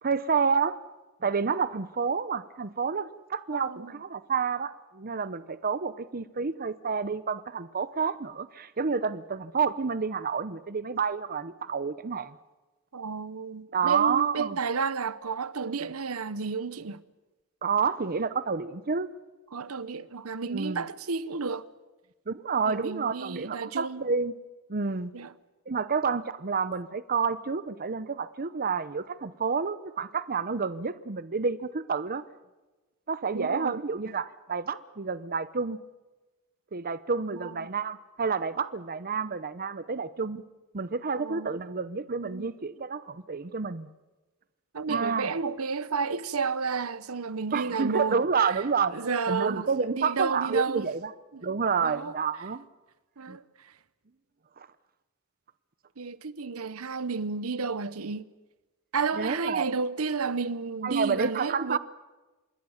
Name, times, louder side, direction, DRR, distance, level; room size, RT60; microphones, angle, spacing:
voice 1, 0.0-0.8 1.2-12.3 13.7-14.6 17.6-19.1 20.5-20.8 22.3-24.3 24.7-25.1 25.7-32.2 33.1-35.8 36.7-40.4 40.7-43.9 44.9-45.3 47.5-49.0 49.3-51.1 51.4-52.6 53.3-53.4 54.6-54.7 59.2-59.7 60.8-61.8, right 5 dB, 40° right, 0.8 m, -29 dB
voice 2, 3.5-3.9 12.9-17.0 19.5-21.7 22.7-24.1 25.1-25.3 33.3-33.8 37.3-37.7 41.2-41.5 42.2-42.5 44.7-48.5 48.9-50.9 51.3-51.4 51.8-52.1 53.2-53.7 56.0-58.3 58.9-61.8, right 5 dB, 75° right, 0.9 m, -32 dB
26.5 x 21.5 x 7.3 m
head